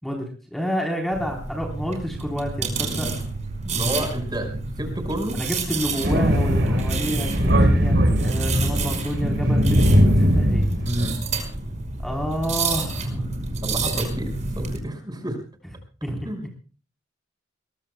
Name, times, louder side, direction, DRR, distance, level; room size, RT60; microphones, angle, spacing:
voice 1, 0.0-3.2 5.3-10.7 12.0-13.3 16.0-16.3, equal, ahead, 1 dB, 3.9 m, -29 dB
sound 1, 1.1-14.8, right 3 dB, 40° right, 5.3 m, -29 dB
voice 2, 3.6-5.4 8.5-8.8 10.9-11.2 13.6-15.4 16.2-16.4, right 1 dB, 20° right, 6 dB, 5.4 m, -30 dB
Thunder, 6.0-11.1, equal, 65° right, 4.0 m, -20 dB
22.5 x 22.5 x 2.3 m, 0.37 s
head